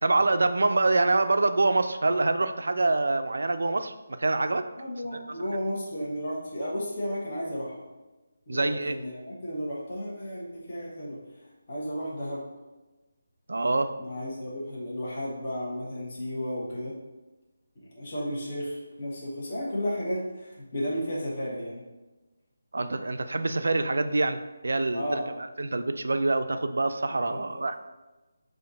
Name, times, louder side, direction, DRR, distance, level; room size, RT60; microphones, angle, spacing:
voice 1, 0.0-3.9 4.2-4.6 8.5-9.0 13.5-13.9 22.7-24.4 24.6-25.2 25.6-27.8, right 2 dB, 75° right, 9 dB, 0.3 m, -25 dB
voice 2, 4.8-7.8 8.5-11.2 11.7-12.4 14.0-16.9 17.7-21.8 24.9-25.3 27.3-27.6, equal, 45° left, -5 dB, 1.2 m, -33 dB
4.2 x 2.5 x 3.9 m, 1.1 s
figure-of-eight pair, 160°, 0 cm